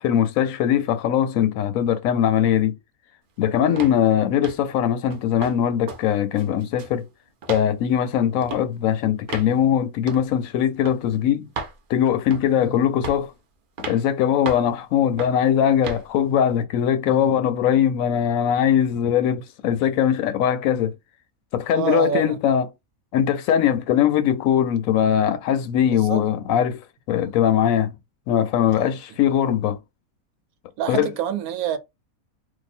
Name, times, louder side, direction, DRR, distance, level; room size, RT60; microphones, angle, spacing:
voice 1, 0.0-2.8 3.4-7.1 7.5-11.5 11.9-13.3 13.9-20.9 21.5-22.7 23.1-27.9 28.3-29.8 30.9-31.1, left 9 dB, 75° left, 0.9 m, -21 dB
sound 1, 3.8-4.0 4.4-4.7 5.1-5.6 5.9-6.0 6.3-7.0 7.4-7.7 8.4-8.6 9.3-9.5 10.1-10.3 10.8-11.0 11.5-11.8 12.3-12.6 13.0-13.3 13.8-14.0 14.4-14.7 15.2-15.4 15.8-16.0, right 4 dB, 55° right, 0.6 m, -34 dB
voice 2, 21.7-22.4 25.9-26.2 27.2-27.3 30.8-31.8, right 8 dB, 85° right, 1.1 m, -27 dB
2.8 x 2.2 x 4.1 m
omnidirectional pair, 1.5 m